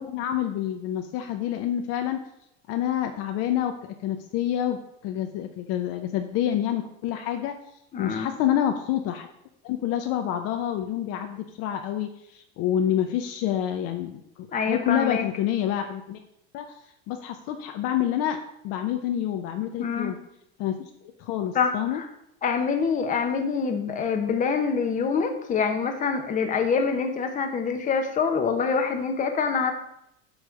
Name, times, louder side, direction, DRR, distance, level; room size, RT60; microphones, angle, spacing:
voice 1, 0.0-2.2 2.7-4.8 5.0-7.6 8.0-9.3 9.6-16.2 16.5-16.7 17.1-18.4 18.6-20.2 20.6-20.8 21.2-22.0, left 11 dB, 55° left, 6 dB, 0.7 m, -27 dB
voice 2, 7.9-8.3 14.5-15.2 19.8-20.1 21.5-22.1 22.4-29.7, left 5 dB, 25° left, 6 dB, 1.0 m, -25 dB
8.3 x 3.2 x 6.3 m, 0.80 s
supercardioid pair, 130°, 29 cm